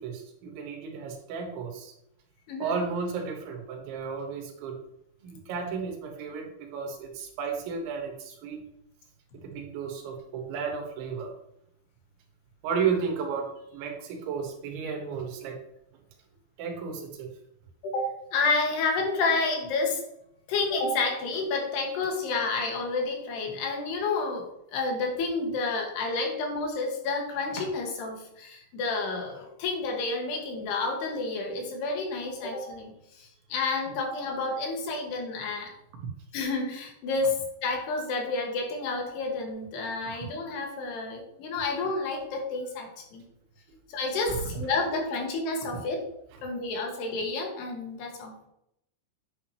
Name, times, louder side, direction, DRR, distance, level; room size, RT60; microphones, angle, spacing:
voice 1, 0.0-1.9 2.6-4.8 5.2-8.6 9.3-11.3 12.6-15.6 16.6-17.3 36.0-36.1 44.3-44.4, right 6 dB, 80° right, 2 dB, 3.8 m, -33 dB
voice 2, 17.8-20.0 20.5-24.5 24.7-35.7 36.3-43.2 43.9-46.1 46.4-48.4, left 3 dB, 65° left, 1 dB, 3.5 m, -30 dB
9.7 x 9.0 x 3.0 m, 0.78 s
omnidirectional pair, 5.4 m